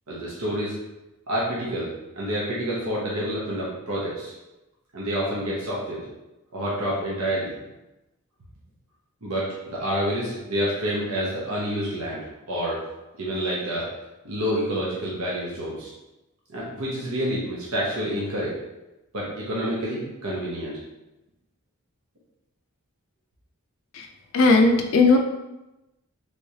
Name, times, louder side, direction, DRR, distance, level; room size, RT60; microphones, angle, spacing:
voice 1, 0.1-0.8 1.3-4.3 4.9-6.1 6.5-7.5 9.2-12.8 13.2-13.9 14.2-15.9 16.5-18.6 19.1-20.8, equal, 75° right, -5 dB, 0.8 m, -28 dB
voice 2, 24.3-25.2, left 3 dB, 65° left, 4 dB, 0.3 m, -17 dB
3.4 x 3.1 x 2.7 m, 0.97 s
head